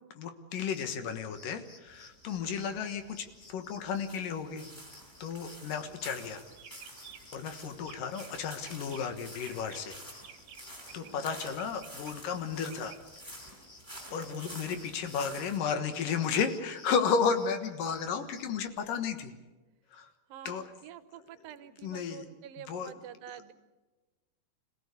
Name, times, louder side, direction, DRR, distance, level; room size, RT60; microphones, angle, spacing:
voice 1, 0.1-4.8 5.2-6.4 7.3-10.0 10.9-13.0 14.1-19.3 19.9-20.1 20.5-20.6 21.8-22.3 22.6-22.9, left 6 dB, 75° left, 8 dB, 3.0 m, -33 dB
sound 1, 0.6-18.7, left 2 dB, 30° left, 2.2 m, -57 dB
sound 2, 1.9-15.6, equal, 5° left, 5.8 m, -50 dB
sound 3, 6.0-6.2 6.5-7.4 7.8-8.3 8.6-11.1 11.4-13.0, right 9 dB, 65° right, 2.6 m, -52 dB
voice 2, 14.1-14.5 20.3-23.5, right 10 dB, 85° right, 12 dB, 2.8 m, -48 dB
26.5 x 17.0 x 8.3 m, 1.2 s
omnidirectional pair, 4.0 m